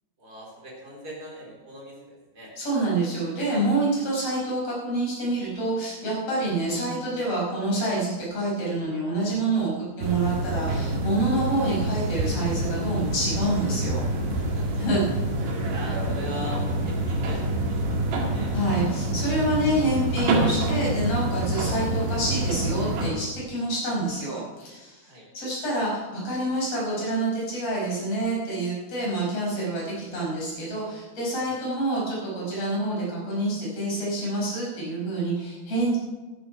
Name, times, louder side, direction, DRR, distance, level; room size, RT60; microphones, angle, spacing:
voice 1, 0.2-2.5 3.9-4.1 14.3-14.8 15.6-18.6 25.0-25.3 31.5-31.6, left 1 dB, 20° right, -3 dB, 3.8 m, -41 dB
voice 2, 2.6-14.1 14.8-15.0 18.5-25.1 25.3-36.0, right 2 dB, 35° left, -4 dB, 5.9 m, -27 dB
sound 1, 10.0-23.1, right 1 dB, 65° right, 4.1 m, -27 dB
13.0 x 10.0 x 5.8 m, 1.2 s
omnidirectional pair, 5.3 m